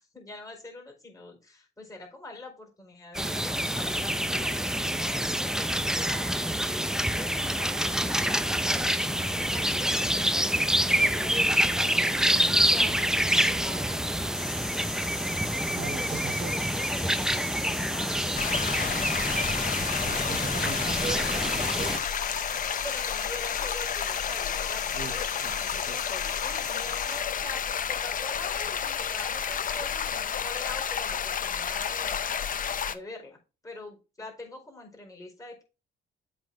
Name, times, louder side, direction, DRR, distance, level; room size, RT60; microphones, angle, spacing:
voice 1, 0.0-6.3 7.1-14.6 15.8-19.1 22.8-32.2 32.9-33.4 33.6-35.6, left 2 dB, 15° left, 4.5 m, -44 dB
sound 1, 3.1-22.0, equal, 5° right, 0.6 m, -27 dB
sound 2, 14.4-27.2, left 8 dB, 60° left, 2.2 m, -43 dB
voice 2, 15.7-16.6 20.0-22.0 24.9-25.1 25.4-26.0, right 6 dB, 55° right, 1.3 m, -39 dB
sound 3, 18.4-33.0, left 7 dB, 45° left, 0.7 m, -31 dB
7.9 x 4.1 x 5.1 m
cardioid pair, 90°, 20 cm